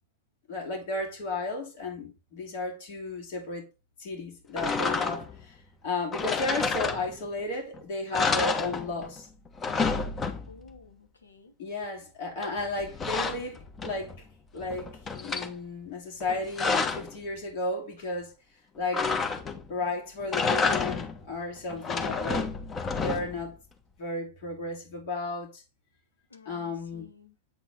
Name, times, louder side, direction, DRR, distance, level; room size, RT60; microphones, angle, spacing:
voice 1, 0.5-3.7 4.0-5.6 5.8-9.3 11.6-14.1 14.5-18.3 18.7-19.1 19.7-22.5 23.0-23.6 24.0-25.6 26.5-27.1, left 2 dB, 55° left, 2.8 m, -34 dB
sound 1, 4.6-5.4 6.1-7.4 7.7-7.8 8.1-9.2 9.5-10.7 12.4-14.2 14.6-15.5 16.2-17.2 18.9-19.7 20.2-21.2 21.7-23.5, left 4 dB, 25° left, 0.9 m, -30 dB
voice 2, 10.5-11.5 26.3-27.4, left 5 dB, 85° left, 1.1 m, -53 dB
7.9 x 4.2 x 3.6 m
hypercardioid pair, 95°, 0 cm